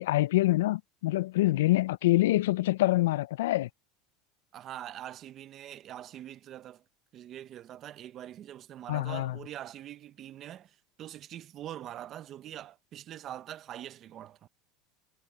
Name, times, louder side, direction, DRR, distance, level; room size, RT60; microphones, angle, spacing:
voice 1, 0.0-3.7 8.9-9.4, left 17 dB, 90° left, 0.4 m, -25 dB
voice 2, 4.5-6.8 7.1-14.5, right 12 dB, 40° right, 0.8 m, -44 dB
supercardioid pair, 130°, 0 cm